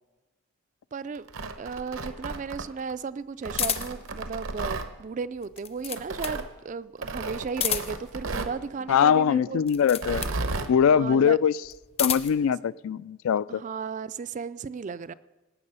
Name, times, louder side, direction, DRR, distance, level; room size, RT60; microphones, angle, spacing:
voice 1, 0.9-1.3 1.6-9.6 10.9-11.4 13.5-15.1, right 5 dB, 35° right, 16 dB, 0.3 m, -35 dB
Tearing, 1.2-2.9 3.4-4.9 6.0-6.5 7.0-8.6 9.9-10.7, right 3 dB, 70° right, 0.9 m, -33 dB
sound 1, 3.5-4.1 5.4-6.4 7.5-8.1 9.6-10.4 11.6-12.4, left 9 dB, 30° left, 0.6 m, -31 dB
voice 2, 8.9-10.2 10.7-11.5 12.0-13.6, left 7 dB, 75° left, 19 dB, 0.3 m, -22 dB
18.5 x 7.4 x 5.5 m, 1.2 s
head